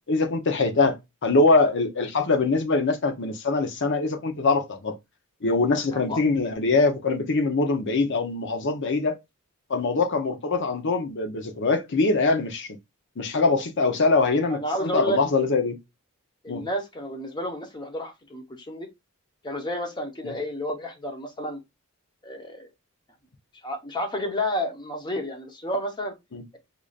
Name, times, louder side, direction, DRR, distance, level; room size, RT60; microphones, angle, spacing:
voice 1, 0.1-1.0 1.2-5.0 5.4-9.2 9.7-12.8 13.2-15.8 16.5-16.6 20.2-20.3 26.3-26.4, left 3 dB, 55° left, 0.7 m, -23 dB
voice 2, 5.9-6.2 14.5-15.2 16.4-18.9 19.4-21.6 22.2-22.7 23.6-26.1, equal, 20° left, 0.8 m, -31 dB
4.8 x 2.6 x 2.4 m
head